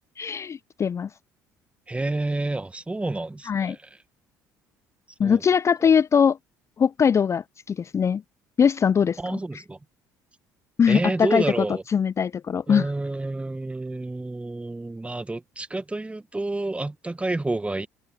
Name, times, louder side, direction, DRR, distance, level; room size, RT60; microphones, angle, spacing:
voice 1, 0.2-1.1 3.5-3.8 5.2-6.4 6.8-8.2 8.6-9.4 10.8-11.4 11.9-12.9, left 7 dB, 35° left, 0.5 m, -21 dB
voice 2, 1.9-3.8 5.2-5.4 9.2-9.8 10.9-11.8 12.7-17.9, right 2 dB, 15° right, 1.7 m, -29 dB
hypercardioid pair, 60°, 9 cm